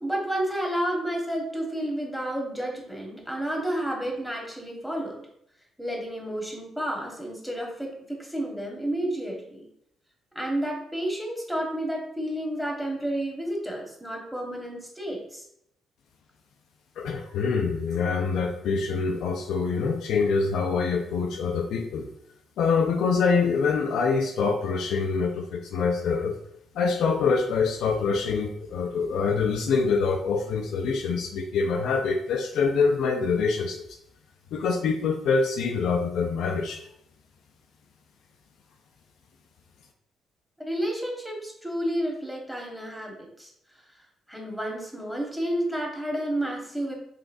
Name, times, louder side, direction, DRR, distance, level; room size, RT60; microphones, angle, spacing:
voice 1, 0.0-5.2 5.8-9.7 10.3-15.4 40.6-43.5 44.3-46.9, right 1 dB, ahead, 0 dB, 1.2 m, -31 dB
voice 2, 17.0-22.1 22.6-26.3 26.7-33.8 34.5-36.8, left 5 dB, 65° left, 3 dB, 0.3 m, -25 dB
3.8 x 2.5 x 2.5 m, 0.74 s
hypercardioid pair, 45°, 0 cm